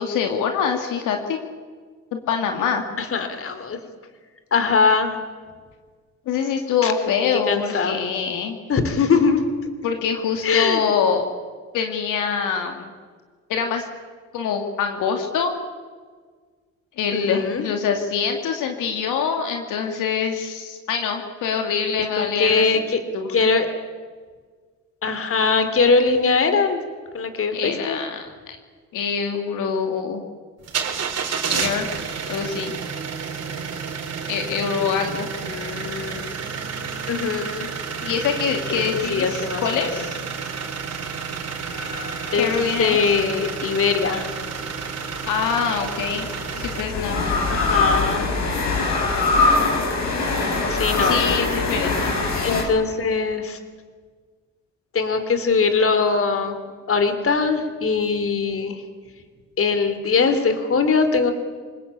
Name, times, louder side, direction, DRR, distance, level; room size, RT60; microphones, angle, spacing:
voice 1, 0.0-1.4 2.1-2.8 6.3-8.6 9.8-11.2 11.7-12.9 13.5-13.8 14.3-15.5 17.0-22.9 23.1-23.5 27.5-28.6 28.9-30.2 31.5-31.9 32.3-32.7 34.3-35.3 38.0-40.2 42.3-43.0 45.2-46.3 46.6-47.3 51.0-52.1, left 6 dB, 85° left, 4 dB, 2.6 m, -24 dB
voice 2, 3.0-3.8 4.5-5.2 6.8-6.9 7.5-8.0 8.7-9.4 10.4-10.8 17.1-17.6 22.2-23.0 23.3-23.7 25.0-26.8 27.1-28.0 35.4-36.3 37.1-37.7 38.7-40.0 42.3-42.5 42.8-44.3 47.5-48.3 50.7-51.2 52.4-53.6 54.9-56.6 56.9-58.8 59.6-61.3, left 5 dB, 45° left, 9 dB, 3.5 m, -21 dB
sound 1, 30.6-46.8, right 6 dB, 55° right, 3.6 m, -30 dB
sound 2, 41.7-43.2 45.1-52.6, left 3 dB, 65° left, 6.0 m, -23 dB
27.0 x 19.0 x 8.7 m, 1.6 s
cardioid pair, 90°, 30 cm